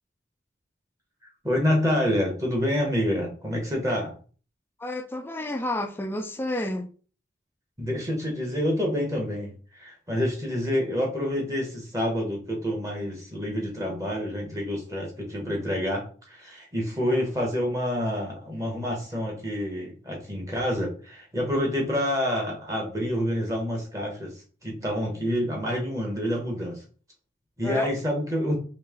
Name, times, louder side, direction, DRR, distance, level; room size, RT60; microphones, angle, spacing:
voice 1, 1.4-4.1 7.8-26.8 27.6-28.6, equal, 15° right, 1.0 m, -28 dB
voice 2, 4.8-6.9 17.1-17.3 27.6-27.9, left 1 dB, 10° left, 0.3 m, -31 dB
3.1 x 2.9 x 3.5 m
head